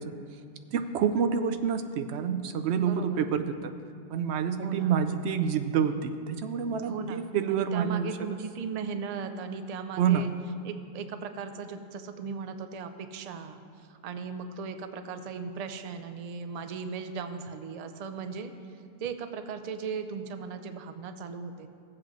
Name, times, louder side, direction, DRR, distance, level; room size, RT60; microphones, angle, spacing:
voice 1, 0.7-3.7 4.1-8.1 10.0-10.2, right 7 dB, 85° right, 9 dB, 0.9 m, -28 dB
voice 2, 2.8-3.2 4.6-4.9 6.8-10.3 10.6-21.7, right 5 dB, 50° right, 8 dB, 0.5 m, -37 dB
16.0 x 7.6 x 3.1 m, 2.3 s
omnidirectional pair, 1.1 m